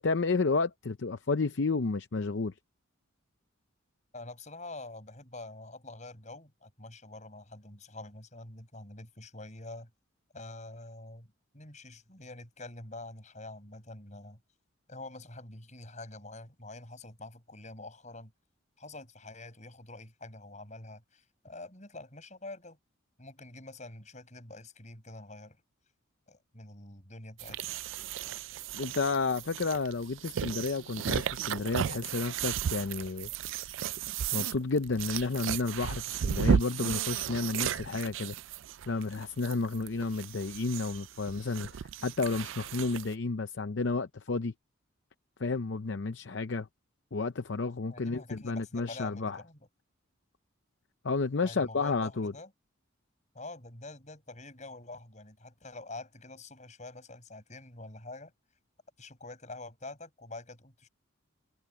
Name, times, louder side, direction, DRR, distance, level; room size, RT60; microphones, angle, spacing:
voice 1, 0.0-2.5 28.7-33.3 34.3-38.3 38.9-44.5 45.4-46.7 47.1-49.4 51.0-52.3, left 3 dB, 60° left, 0.6 m, -31 dB
voice 2, 4.1-9.9 10.3-11.3 11.5-14.4 14.9-18.3 18.8-22.8 23.2-25.6 26.3-27.8 47.9-49.6 51.4-52.5 53.3-58.3 59.0-60.9, left 2 dB, 35° left, 7.3 m, -46 dB
sound 1, 27.4-43.1, right 8 dB, 70° right, 0.4 m, -34 dB
head